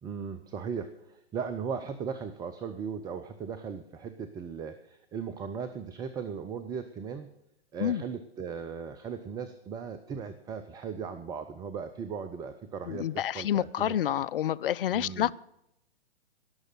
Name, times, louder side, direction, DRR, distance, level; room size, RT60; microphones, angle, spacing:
voice 1, 0.0-7.3 7.7-14.2 14.9-15.3, right 6 dB, 10° right, 0.5 m, -38 dB
voice 2, 12.9-15.3, left 11 dB, 60° left, 0.5 m, -28 dB
18.0 x 6.4 x 7.6 m
figure-of-eight pair, 115°, 32 cm